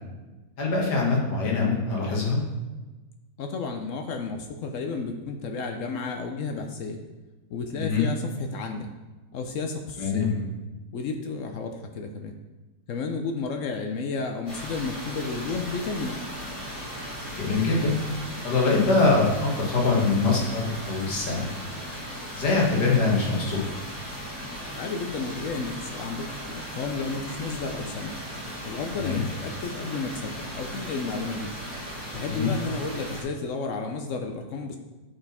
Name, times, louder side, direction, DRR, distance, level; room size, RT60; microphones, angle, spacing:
voice 1, 0.6-2.4 7.7-8.1 10.0-10.4 17.3-18.0 18.4-21.5 22.3-23.6 28.9-29.2 32.3-32.5, left 3 dB, 85° left, -2 dB, 2.0 m, -23 dB
voice 2, 3.4-7.0 7.5-8.9 9.3-10.3 10.9-12.3 12.9-16.2 24.8-28.1 28.6-31.5 32.1-34.8, left 4 dB, 65° left, 5 dB, 0.8 m, -32 dB
sound 1, 14.5-33.2, equal, 45° left, 2.5 m, -37 dB
7.8 x 4.2 x 4.2 m, 1.2 s
omnidirectional pair, 1.7 m